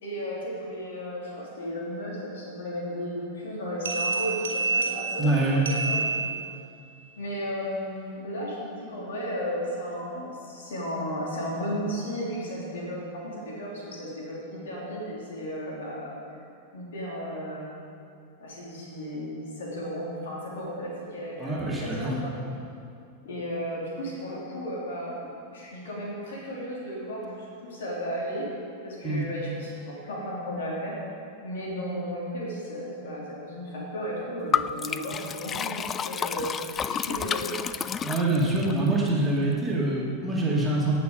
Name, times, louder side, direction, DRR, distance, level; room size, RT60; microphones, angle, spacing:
voice 1, 0.0-6.3 7.2-16.2 16.7-17.6 18.4-22.3 23.2-25.1 25.5-28.5 28.8-31.0 31.4-37.7, equal, 60° left, -4 dB, 3.2 m, -34 dB
sound 1, 3.9-6.8, right 4 dB, 65° right, 1.9 m, -29 dB
voice 2, 5.2-5.6 21.4-22.1 29.0-29.2 38.0-41.0, right 2 dB, 15° right, -4 dB, 2.2 m, -25 dB
Liquid, 34.5-38.7, left 7 dB, 25° left, 0.3 m, -30 dB
17.5 x 6.2 x 5.1 m, 2.4 s
figure-of-eight pair, 90°, 0 cm